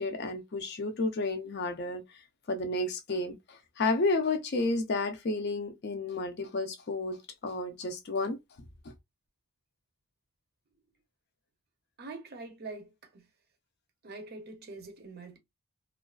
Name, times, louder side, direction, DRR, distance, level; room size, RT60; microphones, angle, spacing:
voice 1, 0.0-2.0 2.5-8.4, left 2 dB, 50° left, 0.5 m, -31 dB
voice 2, 12.0-13.3 14.0-15.4, right 3 dB, 45° right, 0.6 m, -44 dB
2.3 x 2.3 x 2.3 m
head